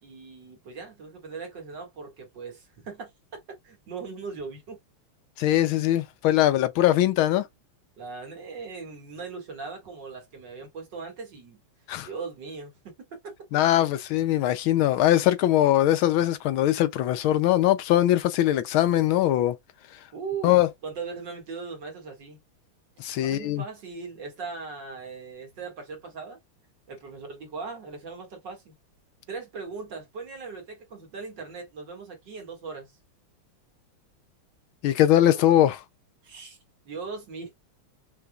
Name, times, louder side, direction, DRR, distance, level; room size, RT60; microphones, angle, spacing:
voice 1, 0.0-3.1 3.6-4.8 8.0-11.6 12.0-12.8 13.2-13.3 20.1-22.4 23.2-26.4 26.9-28.7 29.3-32.9 35.2-35.5 36.2-36.6 36.8-37.5, right 4 dB, 55° right, 2.4 m, -39 dB
voice 2, 5.4-7.5 11.9-12.1 13.5-19.6 20.4-20.7 23.0-23.6 34.8-35.8, left 13 dB, 75° left, 1.3 m, -21 dB
5.9 x 3.6 x 2.3 m
omnidirectional pair, 2.4 m